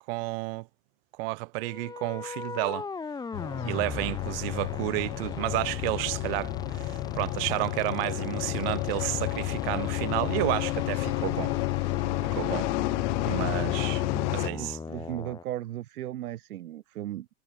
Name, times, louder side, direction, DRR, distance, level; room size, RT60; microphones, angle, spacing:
voice 1, 0.1-0.7 1.2-2.9 3.6-11.5 12.3-12.7 13.2-14.0 14.3-14.8, right 27 dB, 45° right, 0.6 m, -31 dB
sound 1, 1.6-15.4, left 4 dB, 10° left, 1.3 m, -38 dB
sound 2, 3.3-14.5, left 23 dB, 55° left, 1.4 m, -31 dB
voice 2, 14.1-17.3, right 13 dB, 90° right, 2.2 m, -37 dB
supercardioid pair, 150°, 43 cm